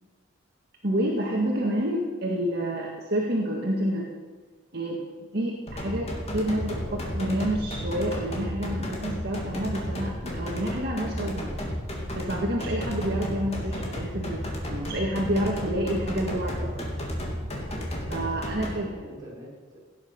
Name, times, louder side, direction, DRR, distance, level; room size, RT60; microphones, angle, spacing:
voice 1, 0.8-4.1 4.7-11.6 12.1-14.4 14.7-16.7 18.1-19.0, right 1 dB, 55° right, -2 dB, 1.9 m, -29 dB
sound 1, 5.7-18.7, equal, 35° left, 2.8 m, -33 dB
voice 2, 16.2-17.0 18.2-19.8, equal, 20° right, -6 dB, 6.0 m, -45 dB
17.0 x 9.9 x 6.0 m, 1.3 s
head